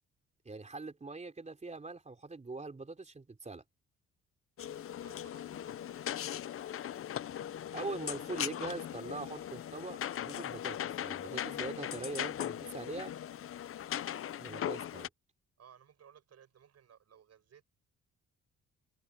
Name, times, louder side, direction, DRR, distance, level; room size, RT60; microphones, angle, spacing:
voice 1, 0.4-3.6 7.7-13.1 14.4-15.1, right 3 dB, 25° right, 3.3 m, -42 dB
sound 1, 4.6-15.1, left 10 dB, 45° left, 0.6 m, -39 dB
voice 2, 5.0-6.1 15.6-17.6, right 8 dB, 55° right, 7.6 m, -60 dB
cardioid pair, 90°, 30 cm